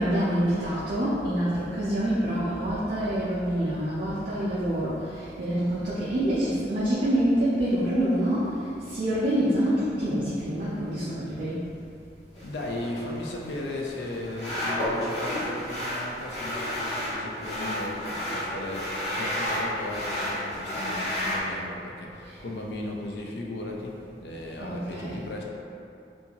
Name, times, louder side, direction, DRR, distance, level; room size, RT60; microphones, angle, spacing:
voice 1, 0.0-11.7 22.2-22.4 24.6-25.3, equal, 45° right, -10 dB, 0.4 m, -26 dB
voice 2, 12.4-24.0 24.2-25.4, left 1 dB, 70° left, -1 dB, 0.4 m, -36 dB
sound 1, 12.4-21.4, left 1 dB, 40° left, 0.7 m, -31 dB
2.7 x 2.4 x 2.8 m, 2.6 s
head